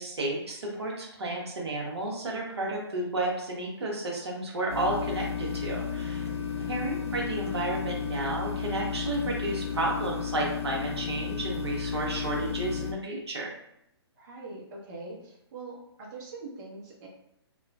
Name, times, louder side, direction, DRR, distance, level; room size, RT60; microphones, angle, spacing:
voice 1, 0.0-6.3 6.7-13.5, right 2 dB, 75° right, -2 dB, 0.8 m, -32 dB
sound 1, 4.7-12.9, left 7 dB, 85° left, 0.5 m, -33 dB
voice 2, 14.2-17.1, right 3 dB, 40° right, -3 dB, 0.8 m, -43 dB
2.9 x 2.3 x 2.3 m, 0.81 s
figure-of-eight pair, 130°, 14 cm